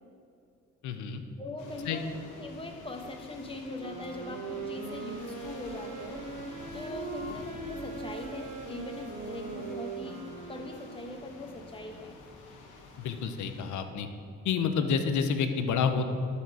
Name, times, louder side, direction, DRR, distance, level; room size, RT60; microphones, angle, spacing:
voice 1, 0.8-1.2 1.9-2.0 13.0-14.1 14.4-16.1, left 6 dB, 75° left, 8 dB, 0.8 m, -29 dB
voice 2, 1.4-6.2 6.7-10.2 10.5-12.1, left 2 dB, 20° left, 3 dB, 1.1 m, -41 dB
sound 1, 1.6-13.8, left 3 dB, 90° left, 1.1 m, -49 dB
sound 2, 3.8-11.5, right 4 dB, 75° right, 1.2 m, -41 dB
12.0 x 4.2 x 4.7 m, 2.5 s
cardioid pair, 90°, 30 cm